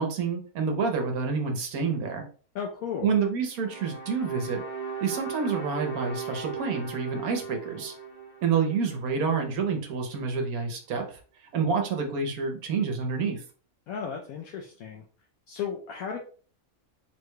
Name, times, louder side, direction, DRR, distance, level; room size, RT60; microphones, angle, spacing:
voice 1, 0.0-2.2 3.0-4.6 5.0-7.9 8.4-11.0 11.5-13.4, right 5 dB, 75° right, 4 dB, 1.2 m, -28 dB
voice 2, 2.5-3.1 13.9-15.0 15.5-16.2, left 7 dB, 75° left, 1 dB, 1.0 m, -34 dB
sound 1, 3.5-9.7, right 5 dB, 15° left, 1.1 m, -38 dB
4.6 x 3.8 x 2.2 m, 0.41 s
omnidirectional pair, 1.6 m